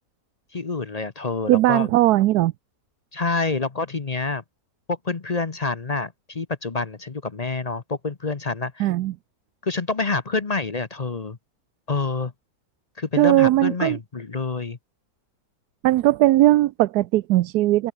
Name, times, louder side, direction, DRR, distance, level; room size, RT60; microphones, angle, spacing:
voice 1, 0.5-1.9 3.1-4.4 4.9-8.9 9.6-11.4 11.9-12.3 13.0-14.8, left 3 dB, 30° left, 0.8 m, -27 dB
voice 2, 1.5-2.5 8.8-9.1 13.2-14.0 15.8-17.9, right 15 dB, 80° right, 1.1 m, -18 dB
open air
omnidirectional pair, 1.7 m